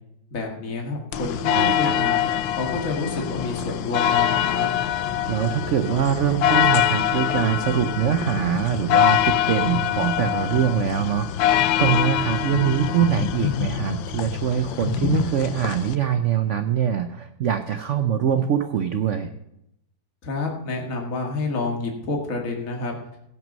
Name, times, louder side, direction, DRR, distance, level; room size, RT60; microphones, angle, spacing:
voice 1, 0.3-4.7 20.2-23.0, left 3 dB, 45° left, 1 dB, 2.2 m, -29 dB
sound 1, 1.1-16.0, left 11 dB, 85° left, 1.4 m, -24 dB
voice 2, 1.5-2.0 5.3-19.3, right 9 dB, 75° right, 9 dB, 0.6 m, -23 dB
17.0 x 6.1 x 5.3 m, 0.82 s
omnidirectional pair, 2.1 m